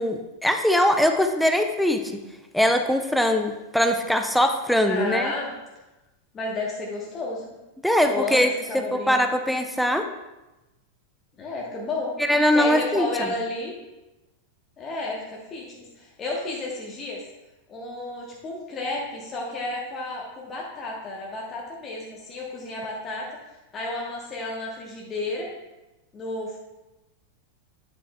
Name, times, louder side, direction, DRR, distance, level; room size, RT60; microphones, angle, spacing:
voice 1, 0.0-2.0 2.5-5.3 7.8-10.0 12.3-13.3, left 1 dB, ahead, 6 dB, 0.5 m, -22 dB
voice 2, 4.9-5.5 6.3-7.5 8.1-9.3 11.4-12.2 12.5-13.7 14.8-17.2 17.7-23.4 23.7-25.5 26.1-26.6, left 2 dB, 25° left, -3 dB, 1.2 m, -32 dB
9.1 x 7.5 x 2.3 m, 1.0 s
figure-of-eight pair, 90°, 0 cm